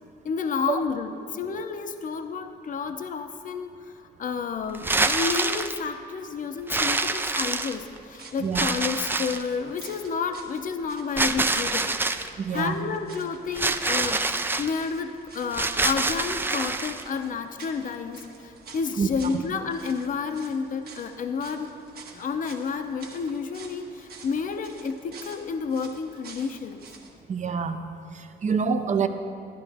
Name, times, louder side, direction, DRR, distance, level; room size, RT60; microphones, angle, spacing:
voice 1, 0.2-12.0 12.5-21.7 22.1-26.8, left 5 dB, 50° left, 7 dB, 0.7 m, -30 dB
sound 1, 4.7-5.8 6.7-8.0 8.5-9.5 11.2-12.3 13.5-14.7 15.5-17.0, right 2 dB, 10° right, 0.4 m, -26 dB
sound 2, 7.6-27.1, right 4 dB, 60° right, 1.4 m, -49 dB
voice 2, 8.4-8.7 12.4-12.8 19.0-19.4 27.3-27.8 28.1-29.1, right 6 dB, 45° right, 8 dB, 0.7 m, -26 dB
12.0 x 11.0 x 3.5 m, 2.5 s
cardioid pair, 95°, 17 cm